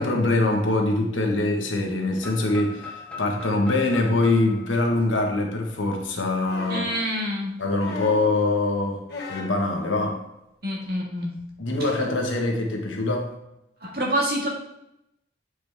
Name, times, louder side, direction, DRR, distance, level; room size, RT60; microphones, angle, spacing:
voice 1, 0.0-6.9 7.6-9.0 9.3-10.2 11.6-13.3, left 2 dB, 90° left, 1 dB, 1.3 m, -23 dB
sound 1, 2.2-6.0, left 4 dB, 5° left, 0.8 m, -41 dB
sound 2, 6.4-7.0 7.8-8.3 9.1-9.6 10.8-10.9, left 4 dB, 60° left, 1.4 m, -35 dB
voice 2, 6.7-7.5 10.6-11.3 13.8-14.5, equal, 55° right, -2 dB, 1.7 m, -26 dB
7.9 x 4.9 x 3.5 m, 0.86 s
head